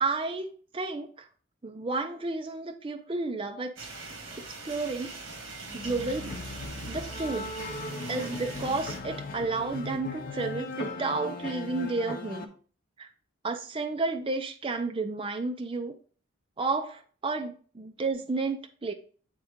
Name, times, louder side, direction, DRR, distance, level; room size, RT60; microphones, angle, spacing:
voice 1, 0.0-1.1 1.6-3.7 4.4-5.1 5.7-6.3 6.9-7.5 8.0-12.5 13.0-13.1 13.4-15.9 16.6-18.9, right 3 dB, 25° right, 6 dB, 0.5 m, -31 dB
sound 1, 3.8-9.0, right 3 dB, 75° right, 1.6 m, -42 dB
sound 2, 5.7-12.4, left 2 dB, 45° left, 0.8 m, -38 dB
8.8 x 3.6 x 3.6 m, 0.42 s
head